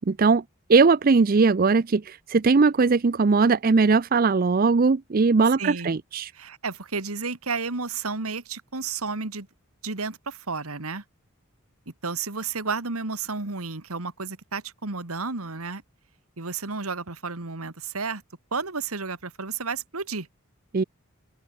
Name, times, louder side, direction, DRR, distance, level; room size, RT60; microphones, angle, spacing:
voice 1, 0.1-0.4 0.7-6.3 20.7-20.8, right 4 dB, 40° right, 0.5 m, -20 dB
voice 2, 5.6-5.9 6.3-9.5 9.8-11.0 12.0-15.8 16.4-18.2 18.5-20.3, right 4 dB, 85° right, 2.1 m, -32 dB
open air
head